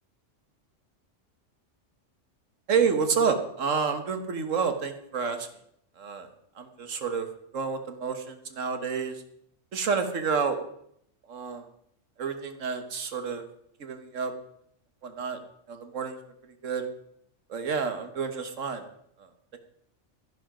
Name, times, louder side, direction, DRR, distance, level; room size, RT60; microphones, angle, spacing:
voice 1, 2.7-5.5 6.0-6.3 6.6-7.3 7.5-9.2 9.7-10.6 11.3-11.6 12.2-13.5 13.8-14.3 15.0-15.4 15.7-16.2 16.6-16.9 17.5-18.8 19.2-19.6, right 5 dB, 80° right, 8 dB, 1.6 m, -29 dB
13.5 x 11.0 x 5.1 m, 0.71 s
omnidirectional pair, 1.3 m